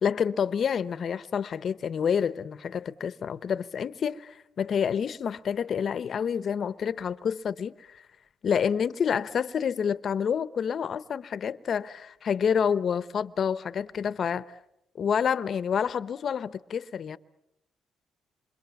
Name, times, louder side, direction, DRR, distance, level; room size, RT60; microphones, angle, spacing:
voice 1, 0.0-8.0 8.4-14.4 15.0-17.2, left 7 dB, 55° left, 0.9 m, -28 dB
27.5 x 25.5 x 7.1 m
cardioid pair, 90°, 0 cm